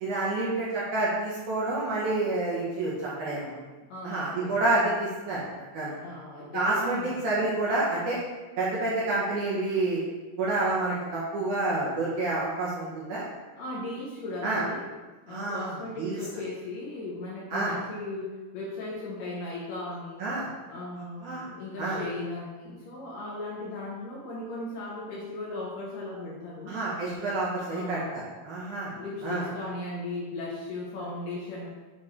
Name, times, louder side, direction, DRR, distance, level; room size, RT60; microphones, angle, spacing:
voice 1, 0.0-3.5 4.0-5.4 5.7-6.0 6.5-8.2 8.6-10.0 10.4-13.2 14.4-14.6 15.3-15.7 16.0-16.2 17.5-17.7 20.2-20.5 21.2-21.4 21.8-22.0 26.7-28.9 29.2-29.4, right 2 dB, 70° right, -7 dB, 2.0 m, -28 dB
voice 2, 3.9-4.5 6.0-7.3 13.6-14.8 15.2-20.3 20.7-26.7 27.7-28.2 29.0-31.7, left 2 dB, 75° left, -4 dB, 2.0 m, -37 dB
8.5 x 3.2 x 4.3 m, 1.3 s
omnidirectional pair, 4.6 m